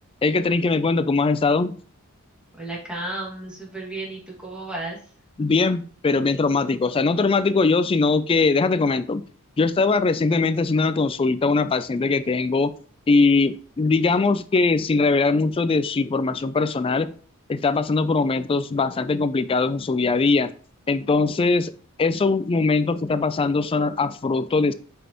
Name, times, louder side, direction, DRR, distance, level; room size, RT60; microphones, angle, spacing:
voice 1, 0.2-1.8 5.4-9.2 9.6-12.7 13.1-17.1 17.5-20.5 20.9-21.7 22.0-24.7, left 3 dB, 25° left, 14 dB, 0.3 m, -21 dB
voice 2, 2.6-5.0, right 2 dB, 5° right, -3 dB, 2.0 m, -33 dB
7.7 x 5.2 x 3.0 m, 0.43 s
head